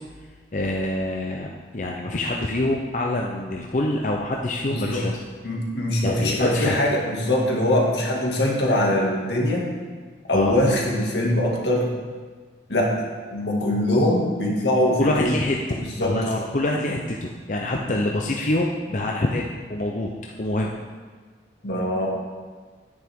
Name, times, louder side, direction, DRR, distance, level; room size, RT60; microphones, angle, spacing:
voice 1, 0.5-1.5 1.7-5.2 6.0-6.8 10.3-10.5 15.0-20.1 20.4-20.7, left 1 dB, 45° left, 0 dB, 0.7 m, -25 dB
voice 2, 4.6-5.0 5.4-9.7 10.3-11.9 12.7-12.9 13.3-15.3 15.8-16.3 21.6-22.1, left 1 dB, 80° left, -2 dB, 2.1 m, -22 dB
10.5 x 9.7 x 3.7 m, 1.5 s
head